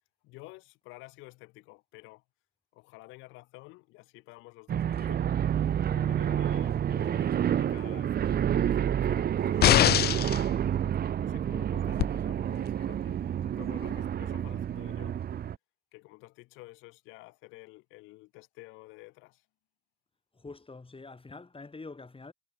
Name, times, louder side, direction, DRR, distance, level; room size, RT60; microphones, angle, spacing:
voice 1, 0.2-2.2 2.7-5.5 5.8-10.7 11.2-15.2 15.9-19.4, left 22 dB, 85° left, 6.5 m, -51 dB
sound 1, 4.7-15.6, right 9 dB, 55° right, 0.8 m, -29 dB
sound 2, 9.6-10.4 12.0-12.1, left 12 dB, 55° left, 0.4 m, -21 dB
voice 2, 20.3-22.3, left 3 dB, 30° left, 6.6 m, -45 dB
hypercardioid pair, 50°, 20 cm